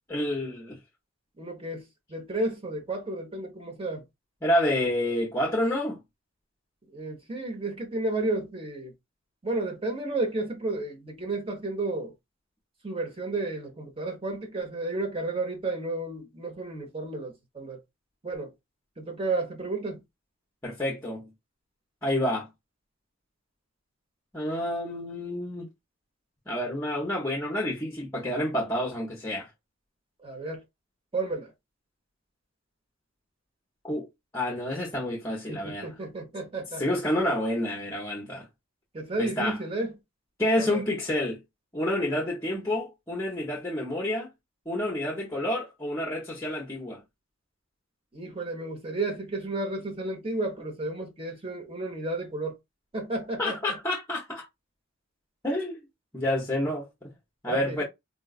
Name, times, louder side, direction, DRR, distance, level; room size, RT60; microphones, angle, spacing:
voice 1, 0.1-0.8 4.4-6.0 20.6-21.3 22.0-22.5 24.3-25.7 26.5-29.5 33.8-34.1 34.3-35.9 36.8-38.5 39.2-39.6 40.4-41.4 41.7-44.3 44.7-47.0 53.4-54.5 55.4-55.8 56.1-57.1 57.4-57.8, left 1 dB, 15° left, 0.7 m, -29 dB
voice 2, 1.4-1.8 2.1-4.0 6.9-8.9 9.4-12.1 12.8-17.8 18.2-18.5 19.0-20.0 30.2-30.6 31.1-31.5 35.5-36.8 38.9-39.9 40.6-40.8 48.1-52.5 52.9-53.6 57.5-57.8, right 2 dB, 25° right, 0.8 m, -32 dB
3.8 x 2.3 x 2.4 m
head